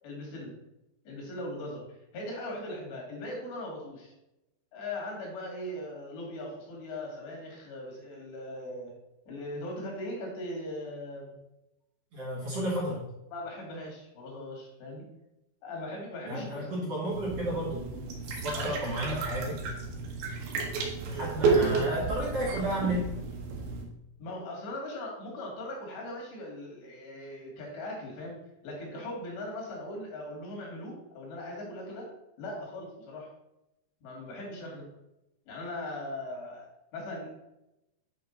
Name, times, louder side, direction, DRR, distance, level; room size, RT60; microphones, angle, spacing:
voice 1, 0.0-0.5 1.1-4.1 4.7-8.9 9.3-11.4 13.3-15.0 15.6-16.7 18.5-18.8 21.1-21.5 24.2-28.4 28.6-32.1 32.4-33.3 34.0-34.9 35.5-36.7 36.9-37.3, left 1 dB, 75° left, -2 dB, 4.6 m, -39 dB
voice 2, 12.1-13.0 16.3-17.9 18.3-19.6 21.0-23.1, right 1 dB, 50° right, -5 dB, 2.0 m, -32 dB
sound 1, 17.1-23.8, right 4 dB, 85° right, 3.8 m, -31 dB
9.6 x 5.2 x 4.0 m, 0.91 s
omnidirectional pair, 5.1 m